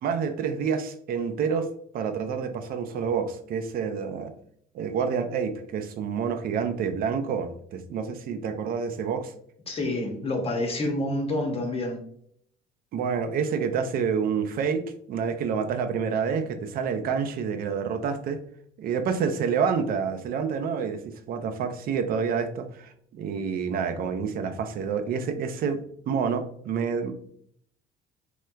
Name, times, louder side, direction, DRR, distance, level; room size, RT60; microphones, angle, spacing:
voice 1, 0.0-1.7 1.9-4.3 4.7-9.3 12.9-14.8 15.1-18.4 18.8-27.1, right 6 dB, 60° right, 8 dB, 0.5 m, -28 dB
voice 2, 9.7-12.0, left 1 dB, 35° left, 3 dB, 0.7 m, -28 dB
3.2 x 2.9 x 2.2 m, 0.65 s
cardioid pair, 110°, 17 cm